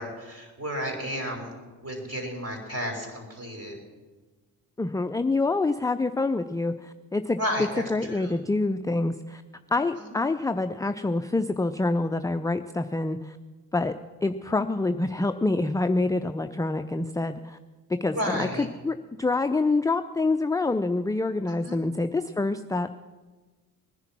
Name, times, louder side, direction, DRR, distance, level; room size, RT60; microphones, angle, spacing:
voice 1, 0.0-1.5 1.8-3.8 7.4-8.3 10.0-10.1 18.1-18.7 21.5-21.8, equal, 30° right, 3 dB, 5.2 m, -32 dB
voice 2, 4.8-9.4 9.7-13.4 13.7-17.6 17.9-22.9, left 2 dB, 5° left, 9 dB, 0.5 m, -26 dB
20.0 x 10.5 x 6.0 m, 1.3 s
hypercardioid pair, 45°, 48 cm